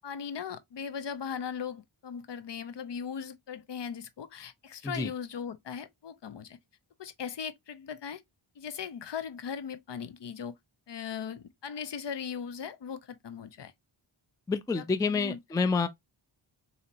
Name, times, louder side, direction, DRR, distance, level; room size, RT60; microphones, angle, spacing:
voice 1, 0.0-6.6 7.0-8.2 8.6-10.5 10.9-13.7 14.7-15.4, left 7 dB, 60° left, 0.6 m, -38 dB
voice 2, 14.5-15.9, left 4 dB, 10° left, 0.3 m, -28 dB
4.1 x 2.8 x 2.6 m
cardioid pair, 65°, 49 cm